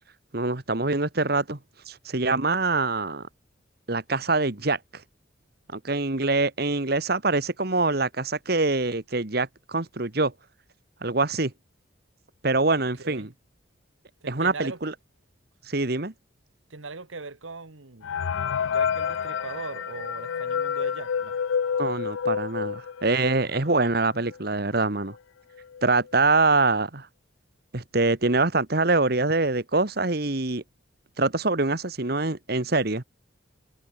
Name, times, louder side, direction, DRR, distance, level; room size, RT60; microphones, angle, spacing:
voice 1, 0.3-1.6 1.9-3.3 3.9-4.8 5.7-10.3 11.0-11.5 12.4-13.3 14.3-14.9 15.7-16.1 21.8-25.2 25.8-27.1 27.7-30.6 31.2-33.0, right 3 dB, 50° right, 1.6 m, -24 dB
voice 2, 14.2-14.8 16.7-18.1 18.6-21.4 23.5-23.7, right 3 dB, 90° right, 1.7 m, -39 dB
sound 1, 18.0-23.5 23.9-24.0 24.2-24.4 25.1-25.2 25.6-25.9, left 7 dB, 80° left, 0.4 m, -28 dB
head